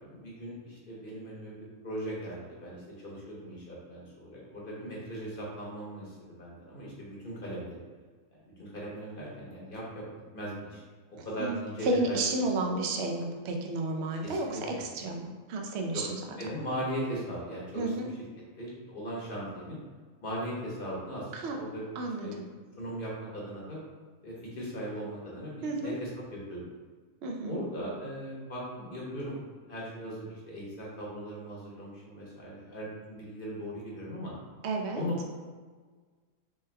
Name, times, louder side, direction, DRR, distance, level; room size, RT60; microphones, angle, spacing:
voice 1, 0.0-1.5 1.8-7.8 8.6-10.0 10.3-10.8 11.2-12.2 12.6-12.7 14.2-14.6 15.0-15.1 15.9-16.0 16.4-18.1 18.6-19.8 20.2-21.8 22.2-22.4 22.8-23.8 24.2-26.1 26.5-26.7 27.4-29.4 29.7-34.3 34.9-35.3, equal, 45° left, -5 dB, 1.0 m, -38 dB
voice 2, 11.8-16.2 17.7-18.1 21.3-21.6 22.0-22.5 25.6-26.0 27.2-27.6 34.6-35.1, right 2 dB, 60° right, 2 dB, 0.8 m, -32 dB
3.4 x 3.3 x 3.3 m, 1.5 s
omnidirectional pair, 1.4 m